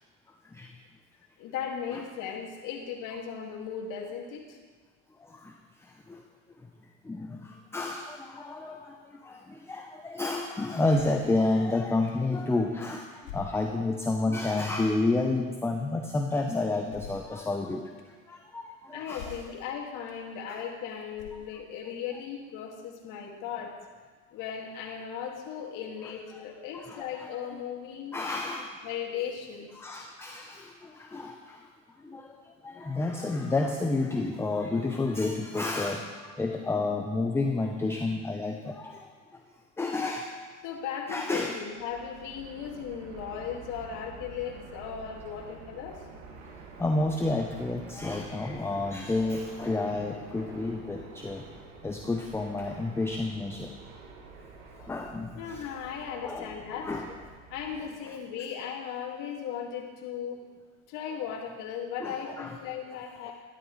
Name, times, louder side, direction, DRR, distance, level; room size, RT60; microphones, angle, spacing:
voice 1, 1.4-4.6 18.9-23.7 24.3-28.2 28.8-29.7 40.6-46.1 55.4-56.9 57.5-60.4 60.9-63.3, left 7 dB, 55° left, -1 dB, 2.1 m, -37 dB
voice 2, 5.2-6.2 7.0-19.3 20.5-20.6 26.0-26.2 26.9-27.3 28.1-28.8 29.8-31.7 32.0-39.4 39.8-40.3 41.1-41.6 46.8-51.4 51.8-53.7 54.8-55.6 56.2-56.5 56.8-57.0 57.8-57.9 62.0-62.6 63.3-63.4, left 2 dB, 5° left, 3 dB, 0.6 m, -30 dB
sound 1, 10.9-11.3 12.1-12.2 13.2-13.9 14.5-14.7 16.9-17.3 18.0-18.1 19.1-19.6 20.1-20.2 21.1-21.7, left 5 dB, 80° left, 2.4 m, -45 dB
Fixed-wing aircraft airplane, 41.7-58.0, right 4 dB, 80° right, 1.8 m, -48 dB
12.5 x 12.0 x 3.2 m, 1.5 s
supercardioid pair, 110°, 38 cm